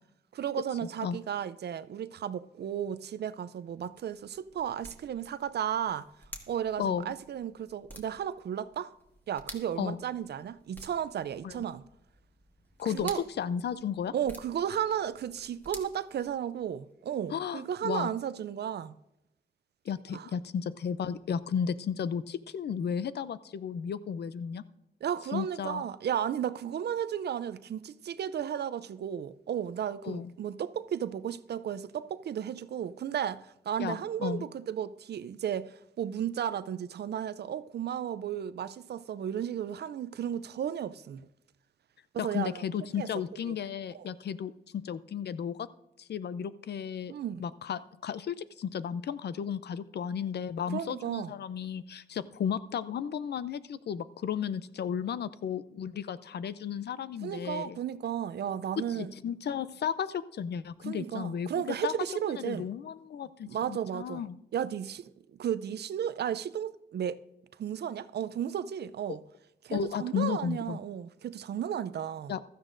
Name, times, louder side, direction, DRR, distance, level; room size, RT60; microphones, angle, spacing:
voice 1, 0.3-6.1 6.5-8.9 9.3-11.8 12.9-13.2 14.1-19.0 20.1-20.3 25.0-41.2 42.1-42.6 43.0-43.1 43.5-43.6 43.9-44.1 47.1-47.4 50.7-51.3 57.2-59.1 60.8-62.7 63.4-64.2 64.5-67.2 67.6-69.2 69.6-72.4, right 9 dB, 70° right, 0.4 m, -34 dB
sound 1, 3.6-16.8, equal, 10° left, 1.7 m, -52 dB
voice 2, 6.8-7.2 9.8-10.0 11.4-11.6 12.8-13.1 13.4-14.1 17.3-18.1 19.9-24.6 25.3-25.8 30.0-30.3 33.8-34.5 42.2-45.7 46.0-47.1 47.4-57.8 58.9-61.9 62.3-64.4 69.1-69.2 69.7-70.8 72.3-72.4, left 8 dB, 70° left, 0.5 m, -34 dB
15.5 x 13.0 x 2.6 m
cardioid pair, 85°, 18 cm